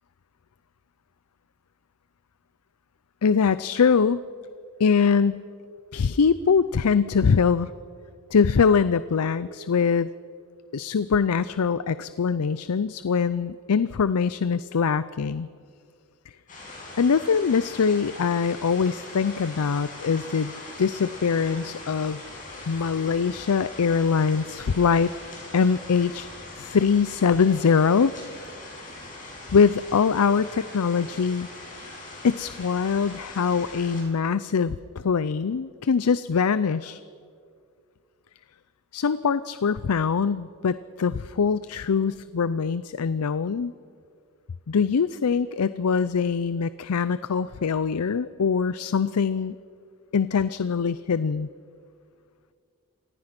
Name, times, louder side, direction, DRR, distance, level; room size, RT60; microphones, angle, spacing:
voice 1, 3.2-4.2 4.8-5.4 5.9-7.7 8.3-10.1 10.7-15.5 17.0-22.2 22.7-25.1 25.5-26.3 26.6-28.1 29.5-31.5 32.2-37.0 38.9-43.7 44.7-49.5 50.1-51.5, left 6 dB, 80° left, 15 dB, 0.5 m, -23 dB
sound 1, 16.5-34.0, left 2 dB, 35° left, 7.6 m, -41 dB
26.5 x 18.5 x 6.0 m, 2.2 s
head